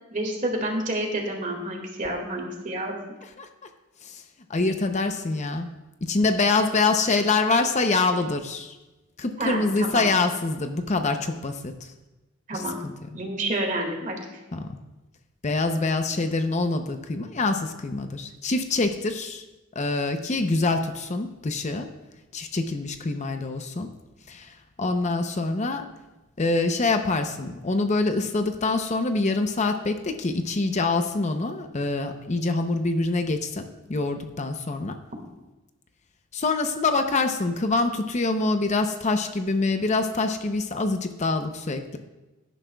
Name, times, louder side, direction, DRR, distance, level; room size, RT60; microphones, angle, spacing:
voice 1, 0.1-2.9 9.4-10.1 12.5-12.8 13.1-14.4, right 1 dB, 40° right, 2 dB, 2.0 m, -29 dB
voice 2, 4.5-5.7 6.0-8.7 9.2-11.9 12.5-12.9 14.5-14.8 15.4-19.4 19.8-21.9 22.3-23.9 24.3-25.9 26.4-33.6 33.9-34.9 36.3-42.0, left 3 dB, 35° left, 7 dB, 0.6 m, -25 dB
17.5 x 10.0 x 2.3 m, 1.1 s
head